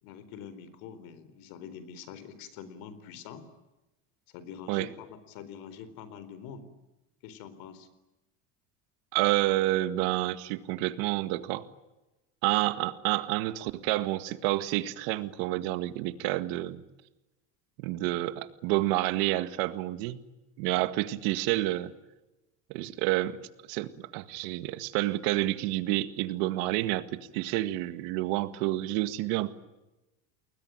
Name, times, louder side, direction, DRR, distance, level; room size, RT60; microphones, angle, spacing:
voice 1, 0.0-3.5 4.3-6.7 7.2-7.9, left 7 dB, 70° left, 14 dB, 4.2 m, -45 dB
voice 2, 9.1-11.6 12.4-16.8 17.8-20.2 20.6-21.9 22.7-29.5, right 17 dB, 75° right, 12 dB, 2.0 m, -29 dB
30.0 x 21.0 x 9.0 m, 1.0 s
cardioid pair, 160°, 36 cm